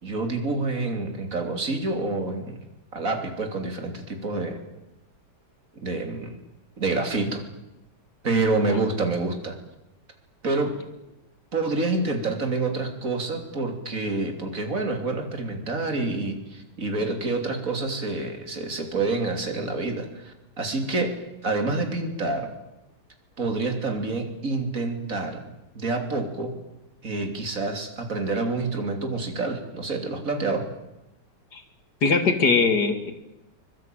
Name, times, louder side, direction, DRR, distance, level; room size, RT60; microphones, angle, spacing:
voice 1, 0.0-2.6 2.9-4.6 5.8-6.4 6.8-7.4 8.2-9.6 10.4-10.8 11.5-22.5 23.4-25.4 25.8-26.5 27.0-30.7, right 3 dB, 50° right, 5 dB, 3.7 m, -27 dB
voice 2, 32.0-33.1, left 4 dB, 70° left, 8 dB, 3.1 m, -21 dB
24.0 x 22.0 x 9.2 m, 0.91 s
omnidirectional pair, 1.8 m